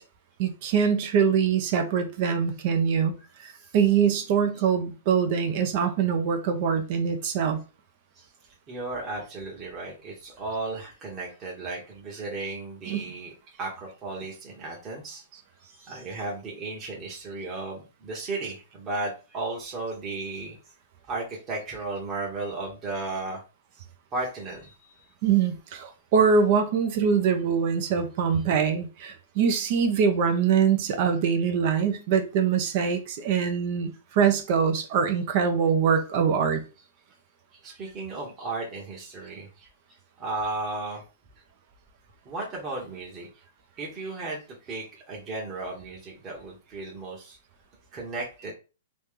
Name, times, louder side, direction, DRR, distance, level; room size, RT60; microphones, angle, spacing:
voice 1, 0.4-3.1 3.4-7.6 12.9-13.1 25.2-36.6, right 6 dB, 50° right, 0.7 m, -23 dB
voice 2, 3.4-3.8 4.5-4.6 8.2-8.3 8.7-15.2 15.6-20.6 21.1-23.4 23.8-23.9 24.1-24.9 25.3-25.4 28.3-28.5 35.1-35.2 37.5-39.7 40.2-41.0 42.2-43.3 43.8-47.4 47.9-48.5, right 3 dB, 25° right, 1.1 m, -35 dB
3.1 x 2.7 x 3.7 m
hypercardioid pair, 130°, 0 cm